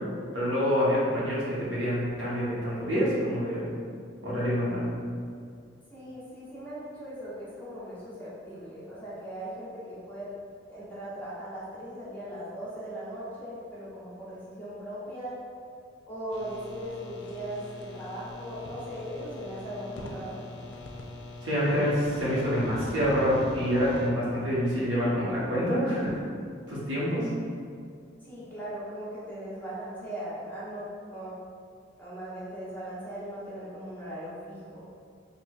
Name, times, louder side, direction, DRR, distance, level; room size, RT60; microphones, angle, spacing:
voice 1, 0.3-3.7 4.2-4.8 21.4-26.2 26.7-27.3, equal, 85° right, -8 dB, 1.1 m, -27 dB
voice 2, 5.9-10.3 10.7-15.4 16.1-20.4 28.2-31.3 32.0-34.9, right 1 dB, 10° left, -10 dB, 1.0 m, -39 dB
sound 1, 16.3-24.1, left 2 dB, 70° left, 0.4 m, -41 dB
4.5 x 2.4 x 2.4 m, 2.2 s
head